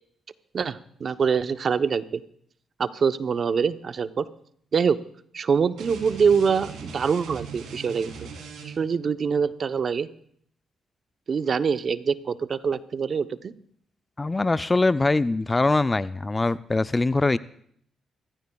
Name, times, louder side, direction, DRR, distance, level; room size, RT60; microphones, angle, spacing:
voice 1, 0.5-2.2 2.8-4.3 4.7-5.0 5.3-8.3 8.6-10.1 11.3-13.5, right 6 dB, 55° right, 11 dB, 0.8 m, -24 dB
sound 1, 5.8-9.0, right 5 dB, 85° right, 3.4 m, -40 dB
voice 2, 14.2-17.4, left 3 dB, 25° left, 15 dB, 0.4 m, -22 dB
25.5 x 14.5 x 2.3 m, 0.64 s
cardioid pair, 75°, 0 cm